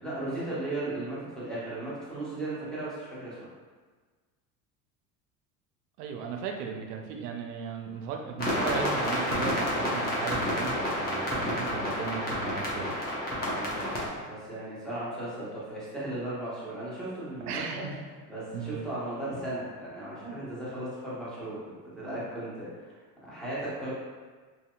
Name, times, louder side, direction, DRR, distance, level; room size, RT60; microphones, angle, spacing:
voice 1, 0.0-3.4 13.4-17.8 18.3-23.9, right 1 dB, ahead, -10 dB, 1.3 m, -36 dB
voice 2, 6.0-12.9 17.5-18.0 18.5-18.8, right 6 dB, 80° right, 3 dB, 0.5 m, -36 dB
sound 1, 8.4-14.1, equal, 20° left, 0.9 m, -30 dB
2.8 x 2.7 x 2.3 m, 1.4 s
hypercardioid pair, 80°, 47 cm